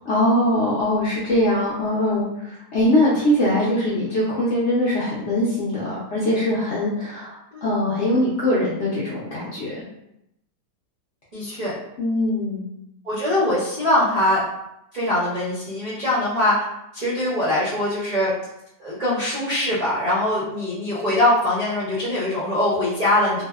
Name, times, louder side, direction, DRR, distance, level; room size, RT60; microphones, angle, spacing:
voice 1, 0.1-7.3 7.6-9.8 12.0-12.6, left 1 dB, 65° left, -8 dB, 0.7 m, -22 dB
voice 2, 11.3-11.7 13.0-14.4 14.9-16.5 16.9-18.3 18.8-23.4, left 1 dB, 55° right, -10 dB, 0.4 m, -22 dB
2.7 x 2.1 x 2.2 m, 0.83 s
omnidirectional pair, 1.8 m